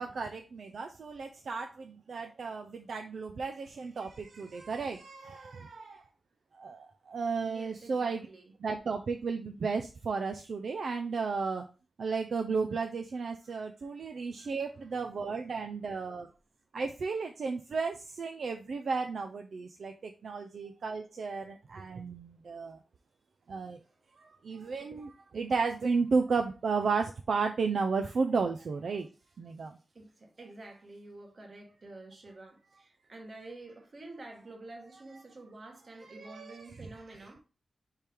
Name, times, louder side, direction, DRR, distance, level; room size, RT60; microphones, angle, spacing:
voice 1, 0.0-6.0 6.5-8.3 8.6-11.6 12.0-16.3 16.7-22.8 23.5-23.8 24.2-29.1 29.4-29.8 36.0-36.7, right 4 dB, 70° right, 0.4 m, -33 dB
voice 2, 7.4-8.5 14.2-14.5 14.9-15.0 23.8-23.9 29.9-37.4, right 2 dB, 45° right, 1.2 m, -49 dB
4.4 x 3.3 x 3.5 m
wide cardioid pair, 125°, 0 cm